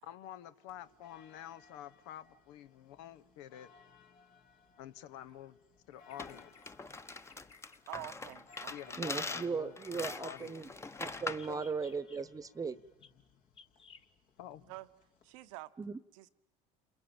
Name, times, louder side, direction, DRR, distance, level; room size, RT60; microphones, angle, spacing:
voice 1, 0.0-3.7 4.8-5.6 5.9-6.5 8.7-9.7 10.2-10.6 11.5-11.6 14.4-14.6, left 11 dB, 80° left, 0.9 m, -48 dB
sound 1, 0.7-15.5, left 5 dB, 60° left, 2.3 m, -64 dB
Bird vocalization bird call bird song, 5.9-6.7 7.1-7.8 8.3-8.9 9.5-10.5 11.3-12.2 13.0-13.1 13.6-14.1, left 5 dB, 30° left, 1.8 m, -59 dB
sound 2, 6.2-11.5, left 3 dB, 15° left, 1.0 m, -42 dB
voice 2, 7.9-9.0 14.7-14.9 15.2-15.7 16.1-16.3, right 18 dB, 90° right, 1.1 m, -47 dB
voice 3, 9.0-10.7 11.0-12.8 15.8-15.9, right 5 dB, 20° right, 1.0 m, -37 dB
29.0 x 22.0 x 8.9 m
supercardioid pair, 105°, 16 cm